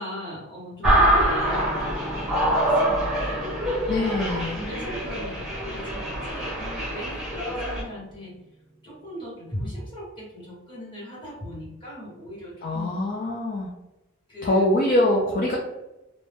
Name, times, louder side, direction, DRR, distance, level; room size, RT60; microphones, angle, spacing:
voice 1, 0.0-4.1 4.5-8.3 8.8-12.9 14.3-14.7, equal, 20° left, -7 dB, 1.2 m, -39 dB
sound 1, 0.8-7.8, right 1 dB, ahead, 0.7 m, -25 dB
Piano, 1.2-9.1, left 1 dB, 90° right, 0.6 m, -41 dB
voice 2, 3.9-4.6 12.6-13.7 14.4-15.6, left 1 dB, 40° left, -2 dB, 0.4 m, -23 dB
2.5 x 2.1 x 3.3 m, 0.97 s
head